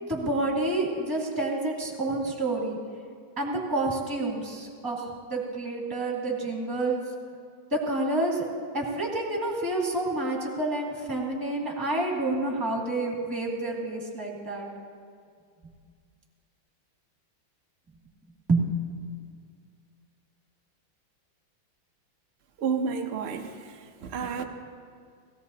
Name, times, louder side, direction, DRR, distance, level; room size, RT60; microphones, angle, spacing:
voice 1, 0.0-2.8 3.4-7.0 7.7-8.4 8.7-14.7 18.5-18.7, right 2 dB, 10° right, -2 dB, 2.0 m, -28 dB
voice 2, 22.6-24.4, right 6 dB, 90° right, 4 dB, 0.5 m, -31 dB
17.5 x 17.0 x 2.8 m, 2.1 s
omnidirectional pair, 2.3 m